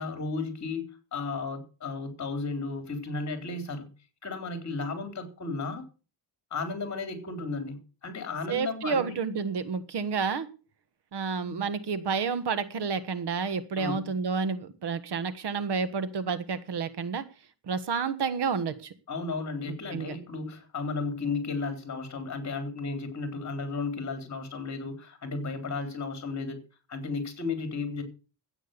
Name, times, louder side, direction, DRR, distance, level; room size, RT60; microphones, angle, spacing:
voice 1, 0.0-3.9 4.2-5.9 6.5-9.1 11.4-11.6 13.7-14.1 19.1-26.6 26.9-28.0, left 3 dB, 40° left, 7 dB, 3.9 m, -34 dB
voice 2, 8.5-10.5 11.1-17.2 17.7-18.9 19.9-20.2, right 5 dB, 65° right, 13 dB, 1.5 m, -30 dB
13.5 x 9.1 x 6.8 m, 0.35 s
wide cardioid pair, 135°, 44 cm